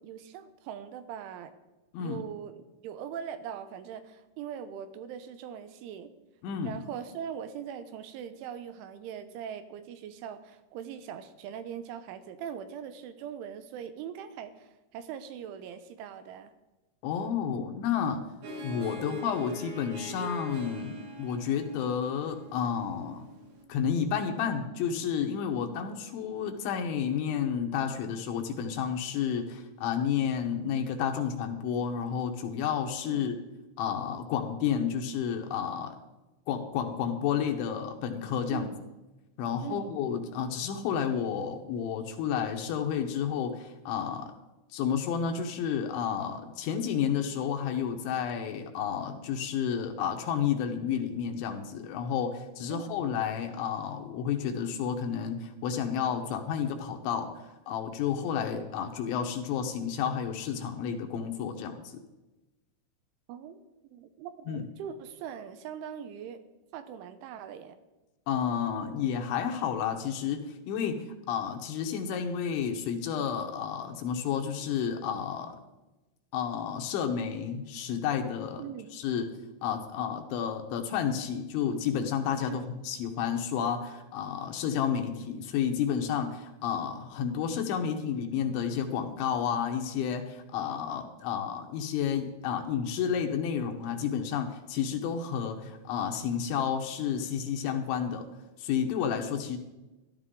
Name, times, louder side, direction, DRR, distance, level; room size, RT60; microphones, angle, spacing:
voice 1, 0.0-1.5 2.0-6.1 6.6-16.5 33.1-33.3 38.5-38.8 39.6-40.0 52.7-53.0 63.3-63.6 63.9-66.4 66.7-67.8 78.6-79.0 82.5-82.7, right 8 dB, 80° right, 10 dB, 3.1 m, -41 dB
voice 2, 6.4-6.7 17.0-18.2 18.6-23.2 23.7-33.3 33.8-36.0 36.5-38.7 39.4-44.3 44.7-57.3 57.7-62.0 64.5-64.7 68.3-75.6 76.3-78.6 78.9-79.3 79.6-98.3 98.6-99.6, left 8 dB, 75° left, 5 dB, 3.2 m, -31 dB
Harp, 18.4-23.6, equal, 60° right, 2.1 m, -43 dB
14.0 x 12.0 x 3.7 m, 1.0 s
omnidirectional pair, 5.6 m